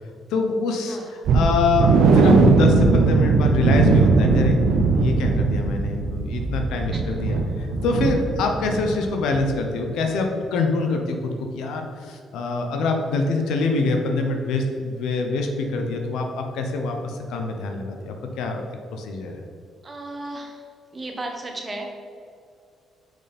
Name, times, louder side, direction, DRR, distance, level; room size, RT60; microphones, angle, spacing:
voice 1, 0.0-4.6 4.9-18.6 18.9-19.4, left 3 dB, 85° left, 3 dB, 0.9 m, -25 dB
sound 1, 1.3-9.0 9.3-9.5 9.9-10.0, right 3 dB, 80° right, 0.7 m, -19 dB
voice 2, 6.9-7.3 19.8-20.6 20.9-21.9, right 2 dB, 25° right, 2 dB, 1.3 m, -34 dB
6.3 x 5.3 x 4.3 m, 2.3 s
cardioid pair, 90°, 0 cm